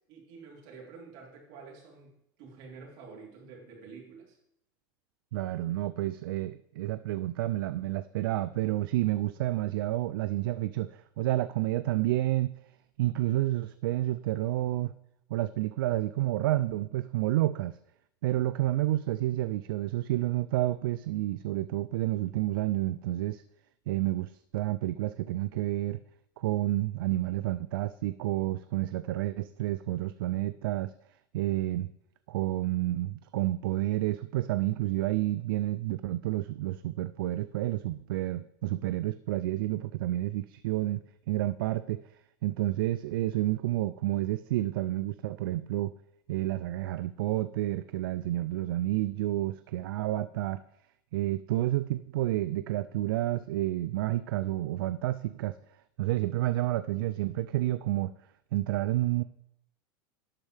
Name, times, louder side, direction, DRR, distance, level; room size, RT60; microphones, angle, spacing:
voice 1, 0.1-4.4, right 5 dB, 65° right, -2 dB, 3.6 m, -49 dB
voice 2, 5.3-12.5 13.0-14.9 15.3-17.8 18.2-23.4 23.9-26.0 26.4-30.9 31.3-31.9 32.3-42.0 42.4-45.9 46.3-50.6 51.1-55.6 56.0-58.1 58.5-59.2, right 15 dB, 85° right, 14 dB, 0.4 m, -30 dB
12.0 x 8.0 x 3.4 m, 0.75 s
supercardioid pair, 115°, 11 cm